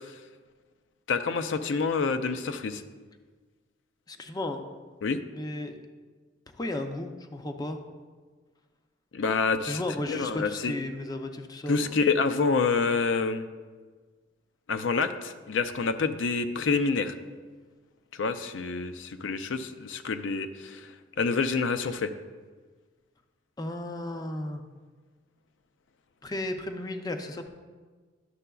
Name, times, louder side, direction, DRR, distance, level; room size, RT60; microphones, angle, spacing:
voice 1, 1.1-2.8 5.0-5.2 9.1-9.8 10.1-10.7 11.7-13.5 14.7-17.1 18.2-20.8 21.2-22.1, left 4 dB, 75° left, 9 dB, 0.4 m, -27 dB
voice 2, 4.1-4.7 5.3-5.8 6.5-7.8 9.7-12.1 23.6-24.6 26.2-27.5, left 1 dB, 20° left, 6 dB, 0.5 m, -34 dB
11.0 x 6.6 x 2.3 m, 1.4 s
head